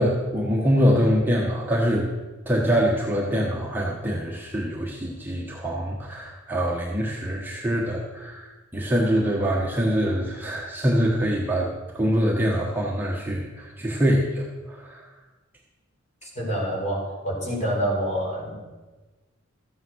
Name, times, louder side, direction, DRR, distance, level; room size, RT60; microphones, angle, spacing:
voice 1, 0.0-2.1 2.5-8.5 8.7-15.0, equal, 10° right, -2 dB, 1.3 m, -24 dB
voice 2, 16.3-18.5, equal, 35° left, -3 dB, 4.9 m, -27 dB
13.5 x 9.2 x 6.3 m, 1.2 s
head